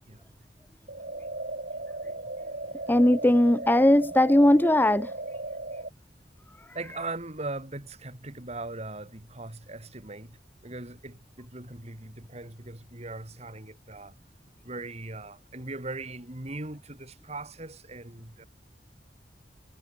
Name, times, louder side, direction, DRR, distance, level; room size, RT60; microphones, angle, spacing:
sound 1, 0.9-5.9, right 2 dB, 55° right, 8.0 m, -36 dB
voice 1, 2.9-5.1, left 1 dB, 10° left, 0.6 m, -19 dB
voice 2, 6.7-14.2 14.6-18.4, right 2 dB, 35° right, 3.1 m, -39 dB
head